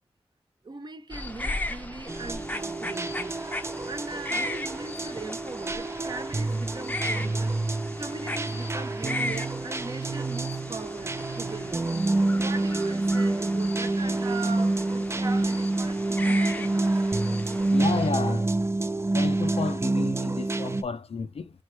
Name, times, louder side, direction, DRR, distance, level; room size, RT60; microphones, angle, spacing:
voice 1, 0.6-7.6 8.0-11.8 12.3-17.0, right 3 dB, 45° right, 1.0 m, -40 dB
sound 1, 1.1-18.1, left 1 dB, 15° left, 0.6 m, -37 dB
sound 2, 2.1-20.8, right 2 dB, 25° right, 0.5 m, -27 dB
voice 2, 17.7-18.5 19.1-21.5, left 5 dB, 70° left, 0.5 m, -31 dB
3.4 x 3.2 x 4.4 m
wide cardioid pair, 100°, 11 cm